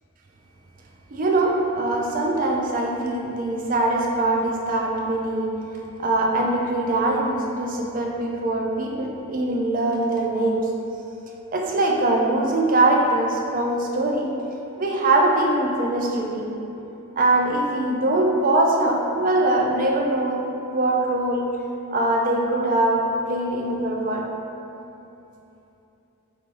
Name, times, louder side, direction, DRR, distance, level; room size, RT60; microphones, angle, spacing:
voice 1, 1.1-5.5 6.0-10.7 11.5-14.3 14.8-16.6 17.2-20.4 20.7-21.5 21.9-24.3, right 2 dB, 35° right, -1 dB, 0.4 m, -22 dB
3.3 x 2.6 x 4.4 m, 2.9 s
head